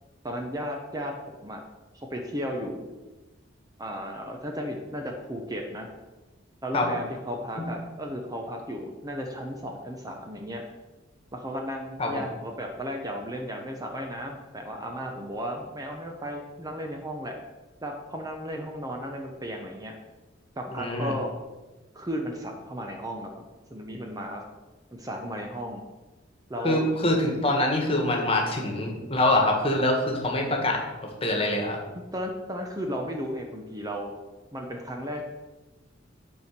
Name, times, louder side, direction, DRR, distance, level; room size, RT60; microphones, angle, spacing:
voice 1, 0.2-1.6 1.9-3.0 3.8-5.9 6.6-10.6 11.3-17.4 17.8-20.0 20.6-21.3 21.9-24.5 24.9-25.8 26.5-26.8 31.9-34.1 34.5-35.2, equal, 20° right, 2 dB, 0.8 m, -34 dB
voice 2, 20.8-21.1 26.6-30.8 31.2-31.8, left 1 dB, 30° left, 1 dB, 1.6 m, -24 dB
8.8 x 4.5 x 6.6 m, 1.2 s
head